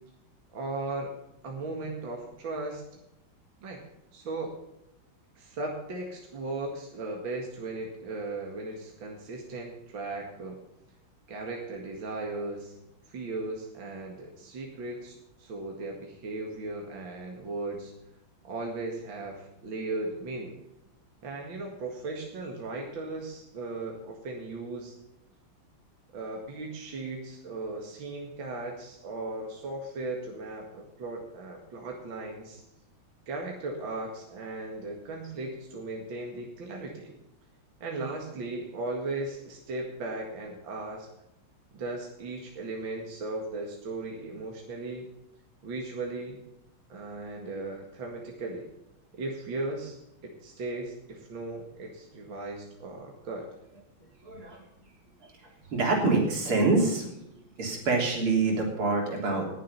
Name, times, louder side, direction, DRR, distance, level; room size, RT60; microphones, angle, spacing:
voice 1, 0.5-1.1 1.4-2.8 3.6-3.8 4.1-4.6 5.4-10.6 11.3-12.8 13.1-15.1 15.4-17.9 18.4-20.6 21.2-25.0 26.1-32.6 33.3-37.2 37.8-41.1 41.7-45.1 45.6-46.4 46.9-48.7 49.2-50.0 50.2-53.5, right 2 dB, 65° right, 0 dB, 2.7 m, -37 dB
voice 2, 54.2-54.6 55.2-55.3 55.7-57.1 57.6-59.5, right 3 dB, 85° right, 0 dB, 4.2 m, -26 dB
19.0 x 7.7 x 5.6 m, 0.84 s
omnidirectional pair, 2.3 m